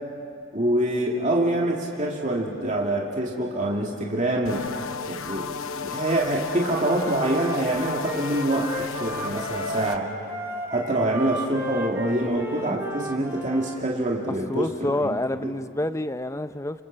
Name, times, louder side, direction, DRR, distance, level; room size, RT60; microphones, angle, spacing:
voice 1, 0.5-4.6 5.1-10.1 10.7-14.7 15.0-15.2 15.4-15.5, right 1 dB, 35° right, -2 dB, 2.5 m, -25 dB
sound 1, 4.5-10.0, left 5 dB, 75° left, 0.9 m, -34 dB
Wind instrument woodwind instrument, 6.7-13.8, equal, 10° right, 2.0 m, -34 dB
voice 2, 14.3-16.8, left 1 dB, 15° left, 11 dB, 0.5 m, -28 dB
28.0 x 26.5 x 7.5 m, 2.5 s
head